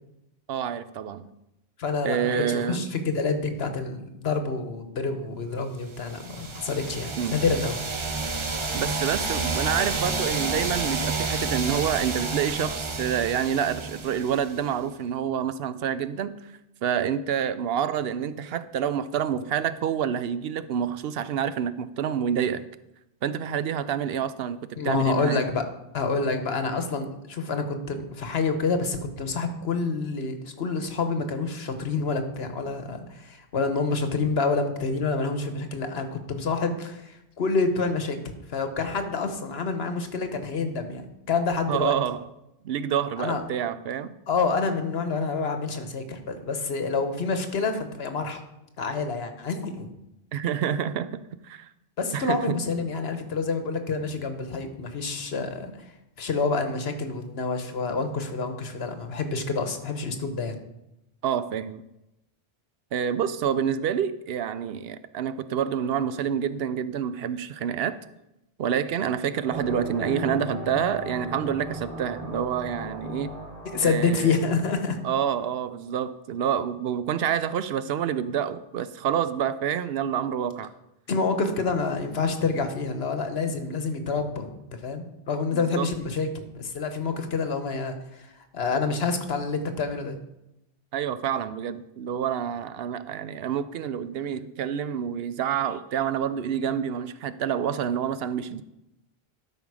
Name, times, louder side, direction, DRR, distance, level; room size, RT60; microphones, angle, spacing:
voice 1, 0.5-1.3 2.0-2.9 7.2-7.4 8.7-16.3 16.8-22.7 23.2-25.4 41.7-42.2 42.6-44.1 50.3-51.7 52.1-52.6 61.2-61.8 62.9-68.0 68.6-73.3 73.8-74.3 75.0-80.7 85.5-85.9 90.9-98.6, right 8 dB, 70° right, 13 dB, 0.8 m, -28 dB
voice 2, 1.8-7.7 24.8-25.6 25.9-38.2 38.5-41.0 41.3-41.9 43.2-43.4 44.3-48.4 48.8-49.9 52.0-55.7 56.2-60.6 73.7-75.0 81.1-84.5 84.8-88.3 88.5-90.2, left 4 dB, 75° left, 7 dB, 1.3 m, -27 dB
sound 1, 6.0-14.7, right 3 dB, 30° right, 0.7 m, -30 dB
sound 2, 69.4-75.6, equal, 85° right, 2.1 m, -37 dB
12.5 x 5.6 x 4.8 m, 0.89 s
omnidirectional pair, 1.1 m